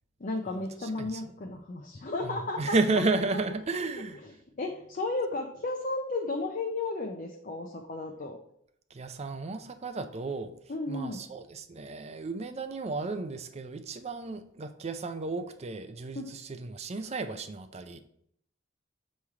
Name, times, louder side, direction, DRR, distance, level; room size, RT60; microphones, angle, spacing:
voice 1, 0.2-2.7 4.2-4.3 4.6-8.4 10.7-11.2 16.1-16.3, left 2 dB, 40° left, 2 dB, 0.6 m, -33 dB
voice 2, 0.8-1.3 2.2-4.2 8.9-10.5 10.9-18.0, right 3 dB, 35° right, 9 dB, 0.4 m, -33 dB
7.0 x 3.1 x 4.8 m, 0.71 s
head